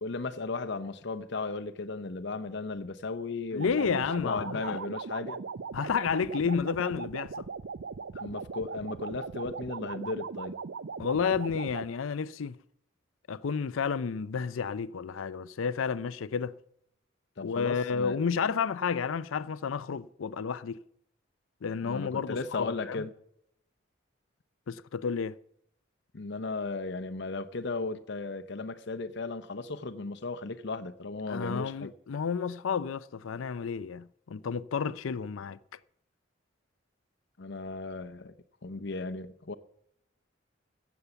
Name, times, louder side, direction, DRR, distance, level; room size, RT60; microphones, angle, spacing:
voice 1, 0.0-5.4 8.1-10.6 17.4-18.2 21.8-23.1 26.1-31.9 37.4-38.3 38.6-39.5, left 3 dB, 60° left, 0.8 m, -36 dB
voice 2, 3.5-4.8 5.7-7.5 11.0-12.6 13.3-16.5 17.4-20.8 21.6-23.0 24.7-25.4 31.3-35.6, left 6 dB, 90° left, 0.5 m, -31 dB
sound 1, 3.6-11.9, right 5 dB, 65° right, 0.5 m, -39 dB
15.0 x 7.1 x 8.0 m
head